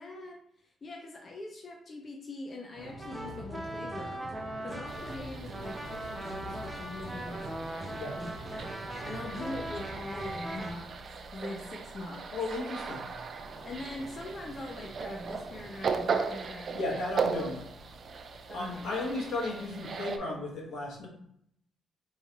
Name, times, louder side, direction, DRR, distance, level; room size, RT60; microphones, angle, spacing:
voice 1, 0.0-12.4 13.6-16.9 17.5-17.6 18.5-18.9, left 2 dB, 40° left, 1 dB, 0.6 m, -43 dB
sound 1, 2.7-10.9 13.1-16.2, right 3 dB, 65° right, 0.9 m, -48 dB
sound 2, 2.8-10.7, right 1 dB, 5° right, 0.8 m, -40 dB
sound 3, 4.9-20.2, right 5 dB, 50° right, 0.4 m, -38 dB
voice 2, 12.3-13.1 16.7-17.7 18.5-21.1, left 2 dB, 70° left, -1 dB, 1.2 m, -34 dB
4.7 x 3.1 x 2.8 m, 0.72 s
cardioid pair, 90°, 0 cm